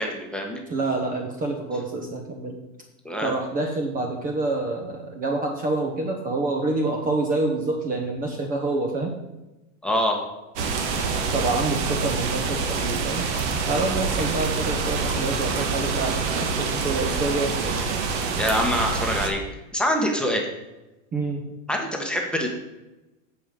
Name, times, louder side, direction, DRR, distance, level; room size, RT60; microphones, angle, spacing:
voice 1, 0.0-0.6 3.0-3.3 9.8-10.2 18.4-20.5 21.7-22.5, equal, ahead, 0 dB, 1.2 m, -25 dB
voice 2, 0.7-2.6 3.2-9.1 11.3-13.3 13.7-17.8 21.1-21.4, right 2 dB, 20° right, 2 dB, 1.0 m, -27 dB
sound 1, 10.6-19.3, right 4 dB, 55° right, 1.7 m, -26 dB
15.5 x 5.2 x 3.8 m, 1.0 s
supercardioid pair, 140°, 41 cm